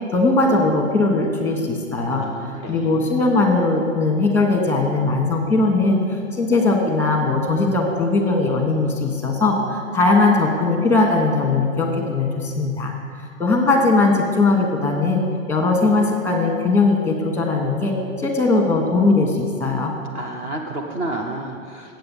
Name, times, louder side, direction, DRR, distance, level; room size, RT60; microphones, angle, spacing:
voice 1, 0.1-12.9 13.4-15.2 15.5-19.9, left 3 dB, 5° left, 3 dB, 1.2 m, -19 dB
voice 2, 2.1-3.5 20.1-22.0, right 2 dB, 15° right, 0 dB, 0.5 m, -31 dB
7.8 x 7.8 x 7.2 m, 2.2 s
hypercardioid pair, 135°, 40 cm